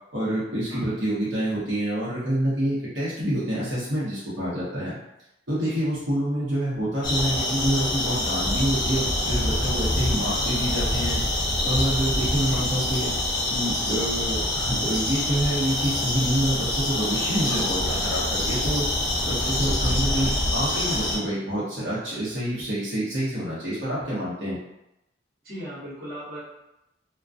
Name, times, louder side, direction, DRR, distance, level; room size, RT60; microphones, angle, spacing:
voice 1, 0.1-5.0 5.5-11.2 11.6-13.1 13.5-18.9 19.2-24.6, right 1 dB, 80° right, -9 dB, 0.8 m, -27 dB
voice 2, 5.5-5.8 10.3-10.5 12.5-12.6 17.5-17.7 19.8-20.0 25.4-26.4, equal, 55° right, -9 dB, 1.0 m, -38 dB
sound 1, 7.0-21.2, left 1 dB, 25° left, 0.5 m, -25 dB
2.3 x 2.1 x 2.5 m, 0.89 s
head